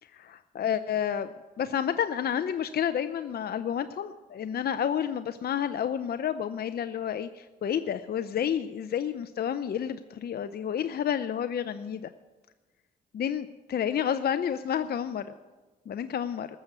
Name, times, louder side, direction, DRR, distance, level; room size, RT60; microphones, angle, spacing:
voice 1, 0.1-12.1 13.1-15.3 15.9-16.5, left 9 dB, 55° left, 11 dB, 0.6 m, -30 dB
15.0 x 6.9 x 9.3 m, 1.3 s
cardioid pair, 65°, 19 cm